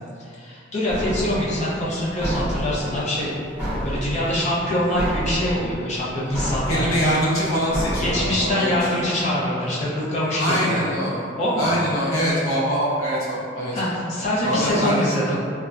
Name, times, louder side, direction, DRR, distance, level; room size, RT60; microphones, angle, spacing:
voice 1, 0.2-3.4 3.8-6.8 8.0-11.0 11.4-11.7 13.7-15.4, left 1 dB, 35° left, -8 dB, 0.6 m, -24 dB
sound 1, 0.9-8.5, equal, 10° right, 0.7 m, -30 dB
voice 2, 6.7-8.9 10.4-11.3 11.6-13.9 14.4-15.4, equal, 90° left, -7 dB, 0.6 m, -23 dB
2.5 x 2.1 x 2.3 m, 2.3 s
head